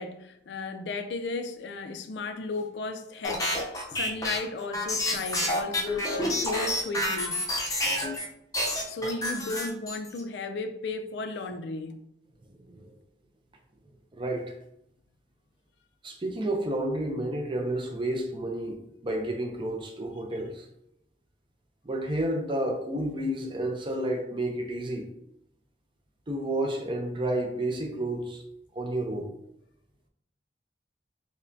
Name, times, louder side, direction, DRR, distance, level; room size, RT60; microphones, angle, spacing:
voice 1, 0.0-7.4 8.7-12.0, left 3 dB, 70° left, 0.4 m, -35 dB
sound 1, 3.2-8.3 8.5-10.2, left 1 dB, 20° left, 0.6 m, -29 dB
voice 2, 12.5-12.9 14.1-14.6 16.0-18.8 19.0-20.7 21.8-25.1 26.3-28.4 28.8-29.3, right 1 dB, 30° right, 0.5 m, -30 dB
5.3 x 2.1 x 2.6 m
head